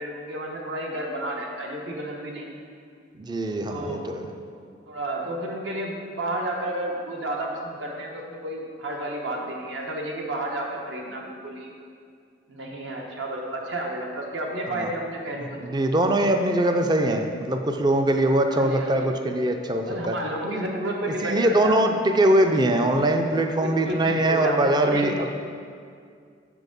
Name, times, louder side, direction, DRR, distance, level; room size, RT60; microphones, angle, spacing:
voice 1, 0.0-2.6 3.7-4.1 4.9-11.7 12.5-15.7 18.5-19.1 19.8-21.9 23.6-24.6 24.9-25.3, right 1 dB, 75° right, 0 dB, 1.2 m, -31 dB
voice 2, 3.2-4.2 14.7-14.9 15.6-20.2 20.5-20.6 21.2-25.3, right 1 dB, 25° right, 5 dB, 0.4 m, -22 dB
7.4 x 6.1 x 5.2 m, 2.3 s
head